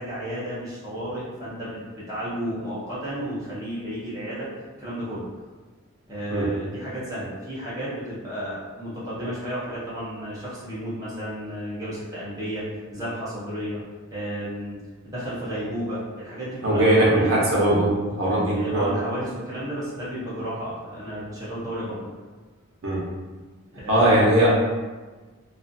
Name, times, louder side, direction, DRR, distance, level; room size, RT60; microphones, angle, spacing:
voice 1, 0.0-4.5 4.8-5.2 6.1-12.6 12.9-13.8 14.1-17.6 18.5-22.1 23.7-24.3, equal, 15° right, -10 dB, 0.7 m, -32 dB
voice 2, 16.6-18.9 22.8-23.0 23.9-24.5, right 1 dB, 70° right, -5 dB, 0.7 m, -20 dB
2.4 x 2.4 x 2.6 m, 1.3 s
head